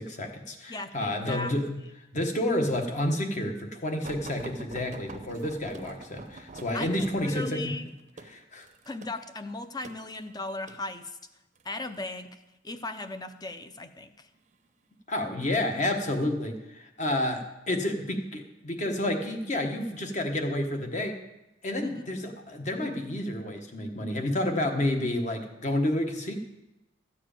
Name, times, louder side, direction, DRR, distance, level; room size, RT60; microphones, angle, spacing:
voice 1, 0.0-1.8 2.1-7.7 8.3-8.7 15.1-21.2 21.6-26.4, left 1 dB, 40° left, 4 dB, 1.3 m, -30 dB
voice 2, 0.7-1.5 6.7-7.9 8.9-11.2 11.6-14.3 21.8-22.2, left 2 dB, 20° left, 9 dB, 0.7 m, -37 dB
sound 1, 4.0-10.8 11.6-12.0 13.0-13.6 14.4-14.5 14.9-15.0, right 2 dB, 40° right, 0.7 m, -45 dB
13.5 x 4.8 x 8.9 m, 0.96 s
head